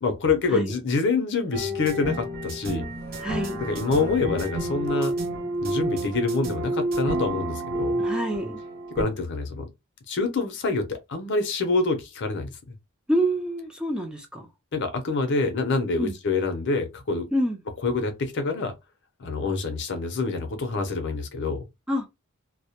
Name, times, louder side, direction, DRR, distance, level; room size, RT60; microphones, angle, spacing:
voice 1, 0.0-2.8 3.6-5.1 5.6-8.0 9.0-9.6 10.1-12.5 14.7-17.3 17.8-18.7 19.2-21.7, left 3 dB, 55° left, 0.6 m, -26 dB
sound 1, 1.5-9.0, right 1 dB, 45° right, 0.6 m, -29 dB
voice 2, 3.2-3.6 8.0-8.6 13.1-14.4 16.0-16.2 17.3-17.6 21.9-22.1, right 1 dB, 5° right, 0.4 m, -27 dB
2.2 x 2.1 x 2.8 m
head